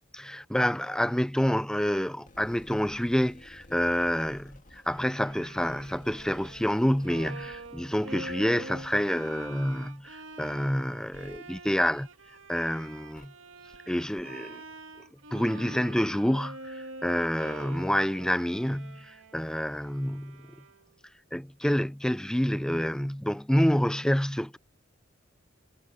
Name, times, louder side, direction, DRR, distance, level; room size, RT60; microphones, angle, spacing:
voice 1, 0.1-12.1 12.5-13.3 13.9-14.6 15.3-20.5 21.3-24.6, equal, 5° left, 0.6 m, -28 dB
sound 1, 2.2-12.6 13.1-13.3 13.7-13.8 14.2-14.3, left 1 dB, 40° left, 2.1 m, -55 dB
Bowed string instrument, 4.9-21.0, right 2 dB, 70° right, 2.2 m, -46 dB
head